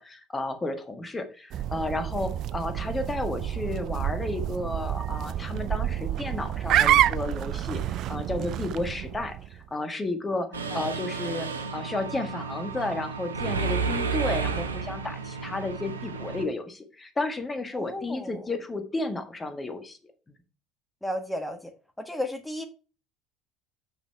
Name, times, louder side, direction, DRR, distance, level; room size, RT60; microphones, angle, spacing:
voice 1, 0.0-20.0, left 2 dB, 20° left, 1.6 m, -32 dB
sound 1, 1.5-9.6, right 12 dB, 50° right, 0.3 m, -28 dB
Mechanisms, 10.5-16.4, right 5 dB, 85° right, 0.8 m, -32 dB
voice 2, 17.7-18.5 21.0-21.7 22.0-22.7, left 1 dB, 5° left, 1.3 m, -34 dB
6.8 x 5.7 x 4.3 m
figure-of-eight pair, 65°, 0 cm